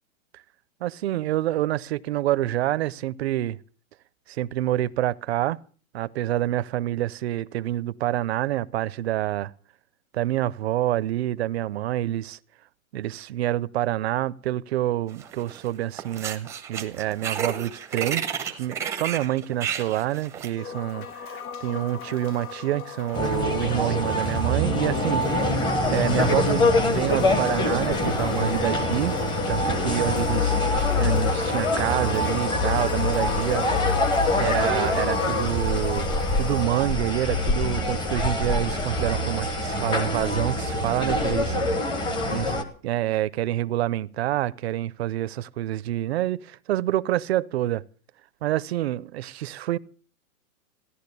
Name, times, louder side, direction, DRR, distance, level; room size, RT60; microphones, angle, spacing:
voice 1, 0.8-3.6 4.3-5.6 5.9-9.5 10.1-12.4 12.9-25.3 25.9-29.2 29.5-33.7 34.4-41.6 42.3-42.5 42.8-47.8 48.4-49.8, right 14 dB, 50° right, 0.6 m, -27 dB
sound 1, 15.2-15.7 15.9-20.6, right 8 dB, 5° right, 0.8 m, -32 dB
sound 2, 20.6-36.7, left 6 dB, 85° left, 2.2 m, -36 dB
sound 3, 23.1-42.6, left 2 dB, 10° left, 1.1 m, -24 dB
15.5 x 11.5 x 6.7 m
supercardioid pair, 165°, 42 cm